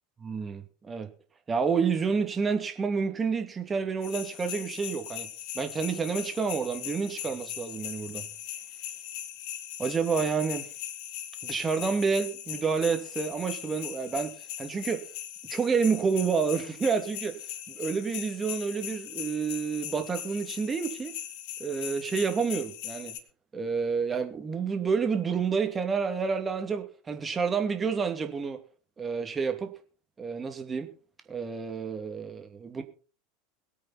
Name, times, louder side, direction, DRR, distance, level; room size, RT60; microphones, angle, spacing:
voice 1, 0.2-1.1 1.5-5.3 5.5-8.2 9.8-10.7 11.4-14.3 14.6-15.1 15.5-17.4 17.7-21.1 21.6-23.2 23.5-28.6 29.0-29.7 30.2-30.9 31.3-32.8, right 5 dB, 20° right, 2.6 m, -29 dB
sound 1, 4.0-23.2, left 11 dB, 55° left, 1.9 m, -39 dB
23.0 x 8.5 x 4.3 m
figure-of-eight pair, 80°, 0 cm